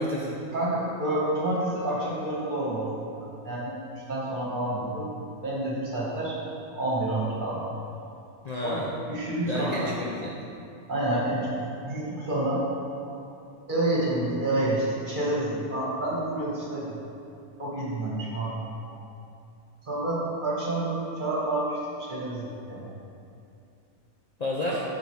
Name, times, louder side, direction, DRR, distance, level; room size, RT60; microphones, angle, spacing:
voice 1, 0.0-0.4 8.4-8.9 9.4-10.5 24.4-24.8, left 1 dB, 70° left, -4 dB, 0.4 m, -30 dB
voice 2, 0.5-2.9 3.4-3.8 4.1-5.1 5.4-6.4 6.7-7.6 8.6-9.9 10.9-12.8 13.0-13.2 13.7-16.9 17.6-18.9 19.8-22.9, right 1 dB, 35° right, -6 dB, 1.6 m, -29 dB
10.5 x 4.8 x 3.2 m, 2.6 s
omnidirectional pair, 1.6 m